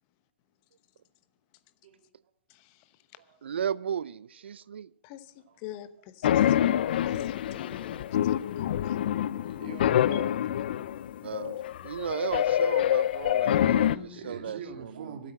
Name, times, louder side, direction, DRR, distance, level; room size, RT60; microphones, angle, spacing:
voice 1, 2.5-2.8 5.0-6.7 7.0-9.0 13.4-14.2, left 11 dB, 35° left, 0.9 m, -46 dB
voice 2, 3.4-4.9 11.2-15.2, right 8 dB, 75° right, 0.5 m, -35 dB
sound 1, 6.2-14.0, left 11 dB, 55° left, 0.5 m, -26 dB
voice 3, 9.4-10.4 14.1-15.3, right 6 dB, 50° right, 2.6 m, -43 dB
13.5 x 8.4 x 7.6 m
hypercardioid pair, 130°, 6 cm